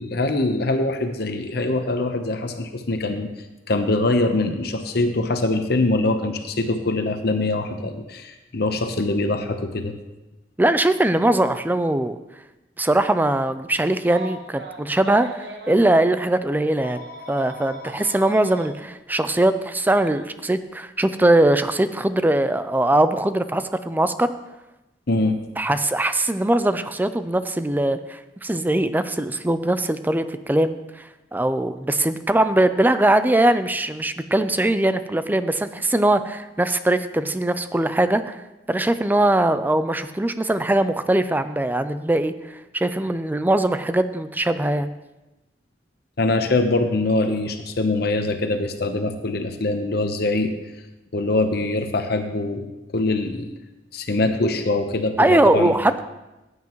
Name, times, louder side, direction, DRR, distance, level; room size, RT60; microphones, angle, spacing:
voice 1, 0.0-3.3 3.7-9.9 25.1-25.4 46.2-50.5 51.1-52.7 52.9-53.5 53.9-55.8, left 2 dB, 65° left, 7 dB, 0.9 m, -23 dB
voice 2, 10.6-12.2 12.8-17.0 17.3-24.3 25.6-30.8 31.3-38.4 38.7-42.3 42.7-44.9 55.2-56.0, right 1 dB, 10° right, 11 dB, 0.4 m, -21 dB
Telephone, 14.0-15.9 16.8-18.7 20.0-20.2 21.7-21.9, right 1 dB, 75° right, 1.3 m, -39 dB
15.0 x 9.5 x 3.1 m, 1.0 s
head